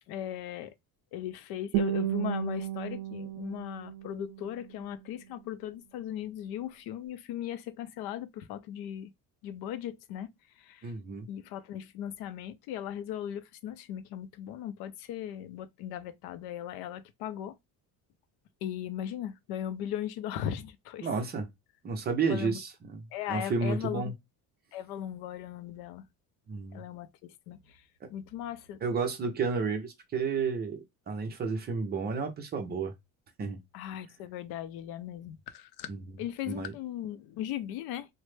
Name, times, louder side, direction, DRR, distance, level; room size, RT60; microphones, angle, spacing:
voice 1, 0.1-0.7 1.1-9.1 9.4-10.3 10.6-10.9 11.3-17.6 18.6-21.1 22.3-22.6 23.1-24.0 24.7-26.0 26.7-27.8 28.1-28.8 33.7-35.9 36.2-38.1, left 10 dB, 80° left, 0.5 m, -38 dB
Guitar, 1.7-4.7, right 12 dB, 80° right, 0.6 m, -33 dB
voice 2, 10.8-11.3 21.0-21.5 21.8-24.1 26.5-26.8 28.8-32.9 33.4-33.6 35.9-36.0 36.5-36.7, right 5 dB, 25° right, 0.5 m, -31 dB
3.0 x 2.1 x 3.2 m
cardioid pair, 180°, 37 cm